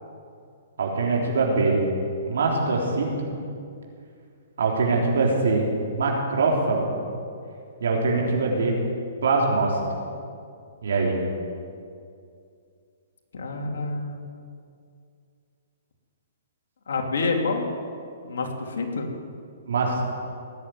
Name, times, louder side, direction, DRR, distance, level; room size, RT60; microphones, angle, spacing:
voice 1, 0.8-1.8 2.2-3.3 4.6-7.0 7.8-8.7 9.2-10.0 10.8-11.2 19.6-20.0, right 3 dB, 80° right, -1 dB, 3.6 m, -23 dB
voice 2, 13.3-14.2 16.9-17.7 18.2-19.2, left 3 dB, 75° left, 1 dB, 2.9 m, -28 dB
19.5 x 7.8 x 9.5 m, 2.4 s
hypercardioid pair, 145°, 0 cm